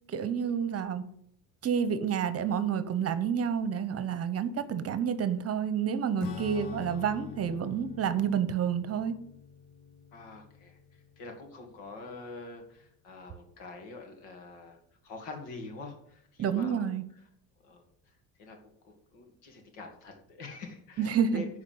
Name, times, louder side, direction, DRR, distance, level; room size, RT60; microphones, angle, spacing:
voice 1, 0.1-1.0 1.6-9.2 16.4-17.0 21.0-21.4, right 7 dB, 35° right, 13 dB, 0.9 m, -29 dB
Acoustic guitar / Strum, 6.2-12.1, left 7 dB, 55° left, 1.1 m, -45 dB
voice 2, 10.1-10.8 11.2-14.8 15.0-17.0 17.6-17.8 18.4-18.6 18.8-21.5, left 3 dB, 90° left, 3 dB, 2.7 m, -45 dB
10.5 x 4.7 x 7.8 m, 0.68 s
cardioid pair, 125°, 40 cm